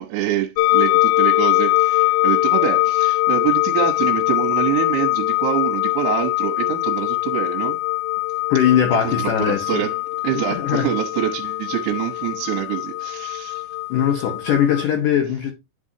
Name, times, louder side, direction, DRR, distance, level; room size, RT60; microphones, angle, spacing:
voice 1, 0.0-7.8 9.0-10.0 10.2-13.7, right 13 dB, 75° right, 3.2 m, -25 dB
sound 1, 0.6-14.8, left 20 dB, 90° left, 2.3 m, -22 dB
voice 2, 8.5-9.8 10.6-10.9 13.9-15.5, left 9 dB, 70° left, 2.0 m, -20 dB
11.0 x 6.0 x 2.8 m
omnidirectional pair, 5.3 m